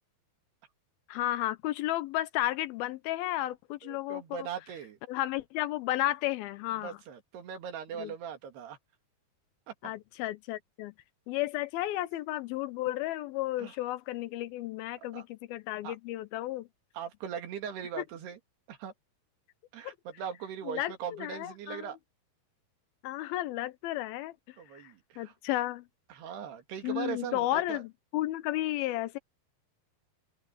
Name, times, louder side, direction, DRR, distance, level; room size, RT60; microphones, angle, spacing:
voice 1, 1.1-4.4 5.1-7.0 8.0-8.1 9.8-10.9 11.3-16.7 18.0-18.1 19.8-20.0 20.7-20.9 21.2-21.9 23.0-25.9 26.8-29.2, left 15 dB, 80° left, 2.4 m, -33 dB
voice 2, 3.8-5.0 6.7-8.8 9.7-9.8 13.6-13.8 15.1-15.2 15.8-16.0 16.9-18.4 18.7-18.9 19.7-22.0 24.6-25.3 26.1-27.8, right 8 dB, 85° right, 4.4 m, -40 dB
open air
omnidirectional pair, 4.6 m